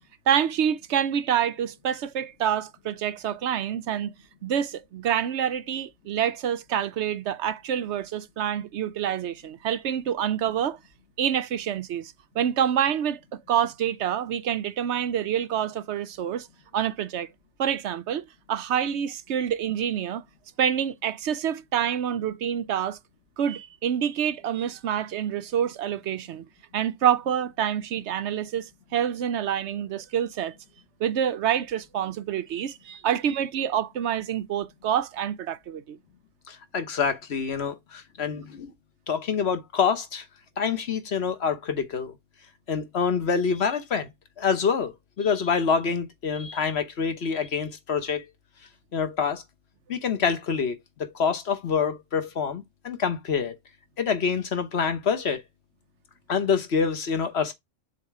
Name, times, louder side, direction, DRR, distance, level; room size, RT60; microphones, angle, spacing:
voice 1, 0.3-4.1 4.4-10.8 11.2-16.5 16.7-17.3 17.6-20.2 20.6-23.0 23.4-26.4 26.7-30.5 31.0-36.0, right 9 dB, 70° right, 0.9 m, -27 dB
voice 2, 36.5-38.7 39.1-40.2 40.6-42.1 42.7-44.1 44.4-48.3 48.9-49.4 49.9-53.6 54.0-55.4 56.3-57.5, left 6 dB, 60° left, 1.3 m, -26 dB
7.2 x 2.8 x 4.6 m
omnidirectional pair, 1.3 m